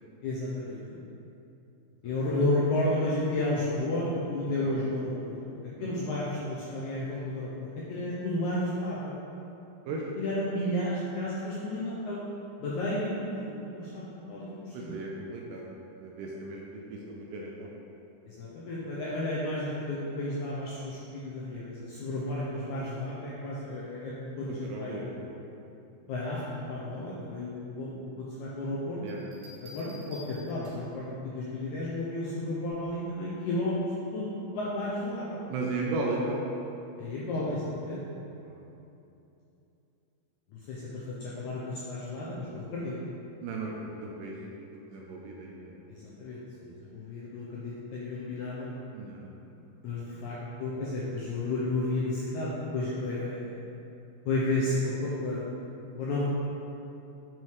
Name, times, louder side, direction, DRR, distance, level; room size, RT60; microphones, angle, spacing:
voice 1, 0.2-1.0 2.0-9.2 10.2-12.2 12.6-15.0 18.3-25.2 26.1-29.0 29.6-34.3 34.5-35.4 37.0-38.0 40.5-43.0 45.9-48.7 49.8-53.6 54.3-55.5 56.0-56.2, left 1 dB, 80° left, -6 dB, 1.8 m, -32 dB
voice 2, 14.7-15.6 16.0-17.7 24.6-25.3 29.0-29.2 35.5-36.4 38.4-38.6 43.4-44.4 44.7-45.9 48.9-50.3, right 3 dB, 80° right, -2 dB, 2.2 m, -36 dB
Bell, 29.1-31.0 32.6-33.0, left 1 dB, 65° right, 1.8 m, -51 dB
9.0 x 4.5 x 3.1 m, 2.8 s
omnidirectional pair, 4.2 m